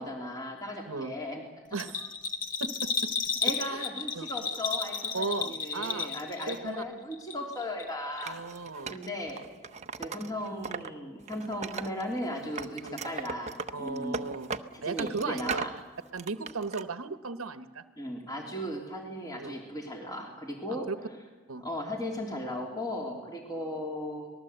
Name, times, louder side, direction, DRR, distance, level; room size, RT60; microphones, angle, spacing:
voice 1, 0.0-1.4 3.4-8.4 8.9-9.5 10.0-14.3 14.7-15.7 18.0-20.9 21.6-24.3, left 1 dB, 20° left, 1 dB, 3.0 m, -36 dB
Bell, 1.7-6.8 7.1-7.9 8.2-8.3, left 6 dB, 40° left, 1.9 m, -33 dB
voice 2, 1.7-2.1 2.6-2.9 3.7-3.8 4.2-4.3 5.1-6.2 6.5-6.8 8.3-9.0 12.8-13.0 13.7-14.5 14.8-15.6 16.1-17.8 19.4-19.6 20.7-20.9 21.5-21.6, right 3 dB, 75° right, 11 dB, 1.0 m, -36 dB
Wood, 8.2-10.9 11.2-12.2 12.6-15.8 16.2-16.8, right 5 dB, 35° right, 0.8 m, -38 dB
25.5 x 19.5 x 8.0 m, 1.3 s
head